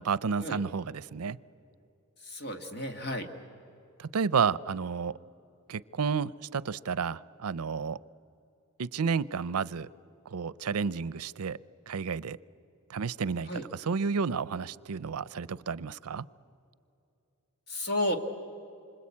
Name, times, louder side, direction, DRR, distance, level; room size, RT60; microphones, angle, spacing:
voice 1, 0.0-1.4 4.0-5.2 5.7-8.0 8.8-9.9 10.3-11.6 11.9-12.4 12.9-16.3, right 5 dB, 80° right, 20 dB, 0.5 m, -31 dB
voice 2, 2.2-3.3 13.5-13.7 17.7-18.2, left 1 dB, 45° left, 6 dB, 1.9 m, -32 dB
27.5 x 25.0 x 8.6 m, 2.7 s
head